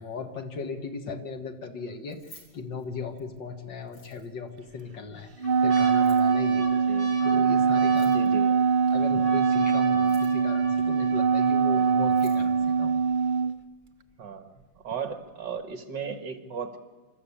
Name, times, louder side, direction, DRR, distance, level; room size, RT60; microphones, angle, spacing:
voice 1, 0.0-8.3 8.9-13.0, left 4 dB, 70° left, 6 dB, 2.3 m, -37 dB
Keys jangling, 2.0-3.4 3.8-4.5 5.9-6.3 7.8-8.5 9.9-10.5 11.7-11.8 12.0-12.5, left 2 dB, 85° left, 4.5 m, -53 dB
sound 1, 2.2-2.7 3.2-3.3 4.2-4.7 5.2-13.1 13.9-14.0 14.1-14.6 15.1-15.2, left 2 dB, 45° left, 5.7 m, -43 dB
Wind instrument woodwind instrument, 5.4-13.5, right 6 dB, 85° right, 0.4 m, -23 dB
voice 2, 6.7-7.1 8.1-8.6 13.4-13.6 14.2-16.8, right 6 dB, 65° right, 8 dB, 2.3 m, -36 dB
26.5 x 13.5 x 8.6 m, 1.4 s
omnidirectional pair, 2.1 m